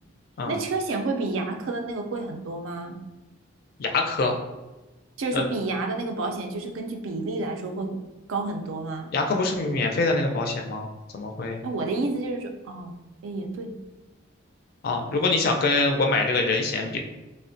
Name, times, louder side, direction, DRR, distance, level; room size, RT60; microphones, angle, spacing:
voice 1, 0.5-3.0 5.2-8.0 8.3-9.1 11.6-13.0 13.2-13.7, right 3 dB, 75° right, 3 dB, 0.4 m, -30 dB
voice 2, 3.8-4.4 5.3-5.4 9.1-11.6 14.8-17.0, left 3 dB, 45° left, 3 dB, 0.3 m, -24 dB
3.4 x 2.1 x 2.6 m, 1.1 s
head